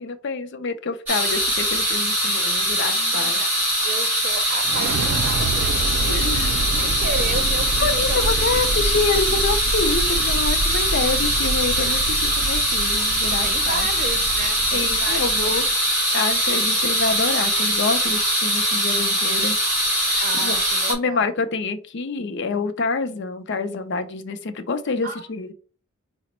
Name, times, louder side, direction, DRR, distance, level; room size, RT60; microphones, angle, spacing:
voice 1, 0.0-3.4 6.1-6.6 7.8-13.9 14.7-15.6 16.1-19.6 20.0-20.6 20.9-25.5, left 4 dB, 60° left, 0.5 m, -27 dB
sound 1, 1.1-20.9, equal, 10° right, 2.2 m, -22 dB
voice 2, 2.9-3.5 3.8-8.3 13.3-15.5 20.2-21.3 25.0-25.2, right 3 dB, 45° right, 0.7 m, -33 dB
sound 2, 4.6-15.7, right 2 dB, 75° right, 0.4 m, -28 dB
4.9 x 2.1 x 4.2 m
head